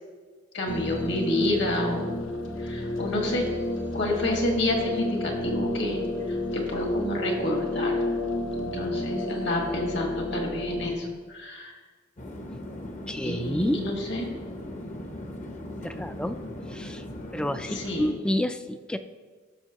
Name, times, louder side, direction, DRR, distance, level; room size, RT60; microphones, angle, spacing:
voice 1, 0.5-2.1 2.6-3.5 3.9-6.0 6.3-8.0 8.5-11.7 13.2-14.3 15.9-16.0 17.7-18.1, left 1 dB, 60° left, 1 dB, 1.7 m, -29 dB
sound 1, 0.7-11.0, left 1 dB, 90° left, 1.1 m, -31 dB
sound 2, 12.2-18.1, left 1 dB, 40° left, 0.8 m, -38 dB
voice 2, 13.1-13.8 15.8-16.4 16.7-17.0 17.3-19.0, left 1 dB, 5° left, 9 dB, 0.3 m, -29 dB
16.0 x 6.3 x 2.9 m, 1.5 s
head